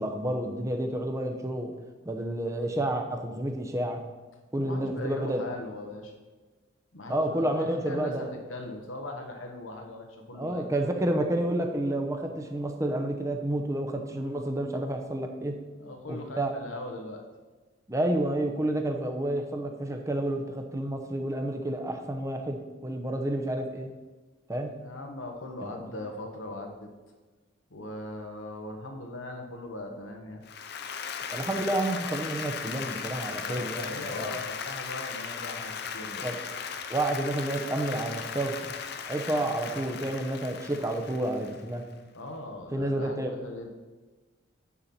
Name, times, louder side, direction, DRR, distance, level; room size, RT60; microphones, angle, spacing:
voice 1, 0.0-1.7 2.0-4.0 4.5-5.4 7.1-8.3 10.4-15.5 16.1-16.5 17.9-23.9 24.5-24.7 25.6-25.7 31.3-34.3 36.2-36.4 36.9-38.6 39.1-41.8 42.7-43.3, right 1 dB, 15° right, 3 dB, 0.7 m, -30 dB
voice 2, 4.6-6.1 6.9-10.9 15.8-17.2 24.8-26.9 27.7-30.4 33.4-36.3 42.1-43.7, left 2 dB, 85° left, 3 dB, 1.1 m, -40 dB
Applause, 30.5-41.8, left 6 dB, 55° left, 0.6 m, -37 dB
9.7 x 5.7 x 4.3 m, 1.3 s
head